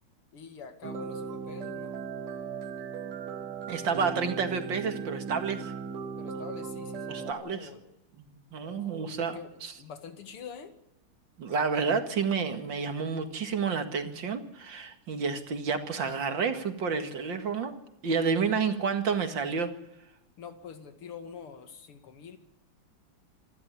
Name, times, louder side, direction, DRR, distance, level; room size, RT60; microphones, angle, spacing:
voice 1, 0.3-2.0 6.2-7.9 8.6-10.7 20.4-22.4, left 6 dB, 85° left, 8 dB, 2.9 m, -46 dB
sound 1, 0.8-7.3, right 6 dB, 85° right, 2.3 m, -37 dB
voice 2, 3.7-5.7 7.1-7.7 8.2-9.7 11.4-17.7 18.0-19.7, right 5 dB, 60° right, 8 dB, 2.6 m, -30 dB
27.0 x 12.0 x 9.8 m, 0.88 s
omnidirectional pair, 2.4 m